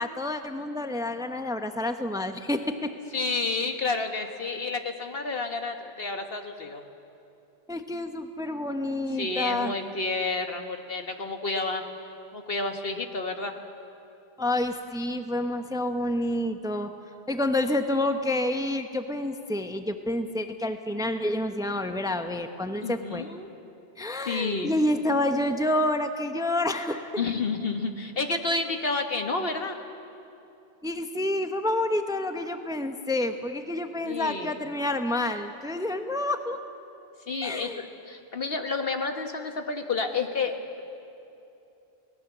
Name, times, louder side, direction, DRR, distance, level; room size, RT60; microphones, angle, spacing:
voice 1, 0.0-2.9 7.7-9.7 14.4-16.9 17.3-23.2 24.0-27.2 30.8-36.6 37.4-37.8, left 1 dB, 5° right, 7 dB, 0.9 m, -28 dB
voice 2, 3.1-6.8 9.2-11.8 12.3-13.5 22.8-23.5 24.3-24.7 27.2-29.8 34.1-34.6 37.3-40.6, left 3 dB, 65° left, 5 dB, 1.7 m, -30 dB
29.0 x 19.0 x 7.4 m, 2.8 s
omnidirectional pair, 1.1 m